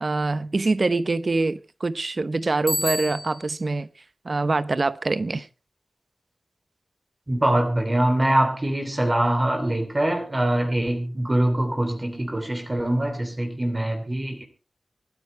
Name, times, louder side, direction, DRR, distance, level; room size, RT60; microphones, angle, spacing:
voice 1, 0.0-3.9 4.2-5.5, right 3 dB, 55° right, 0.8 m, -24 dB
Bicycle bell, 2.7-3.6, left 1 dB, 5° left, 5.2 m, -29 dB
voice 2, 7.3-14.4, right 1 dB, 30° right, 3.2 m, -23 dB
24.5 x 9.9 x 3.3 m
cardioid pair, 50°, 0 cm